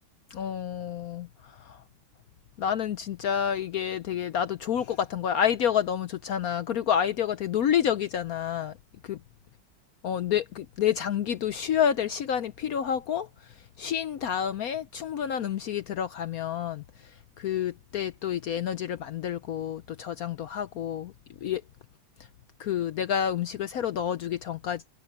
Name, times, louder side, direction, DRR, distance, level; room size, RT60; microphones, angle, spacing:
voice 1, 0.3-1.8 2.6-8.7 9.0-9.2 10.0-13.3 13.8-16.8 17.4-21.1 21.4-21.6 22.6-25.0, left 9 dB, 75° left, 0.8 m, -29 dB
omnidirectional pair, 2.3 m